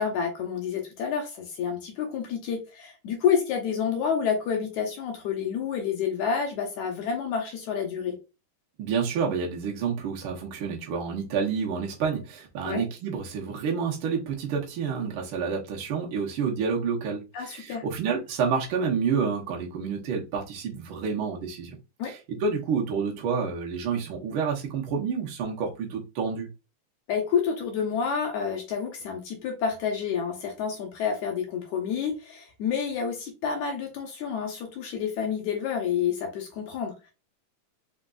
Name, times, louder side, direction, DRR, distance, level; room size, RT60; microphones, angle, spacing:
voice 1, 0.0-8.2 12.6-12.8 17.3-17.8 22.0-22.1 27.1-37.1, left 7 dB, 70° left, 2.0 m, -29 dB
voice 2, 8.8-21.8 22.1-26.5, right 6 dB, 85° right, 1.1 m, -29 dB
5.1 x 3.8 x 2.3 m
omnidirectional pair, 3.9 m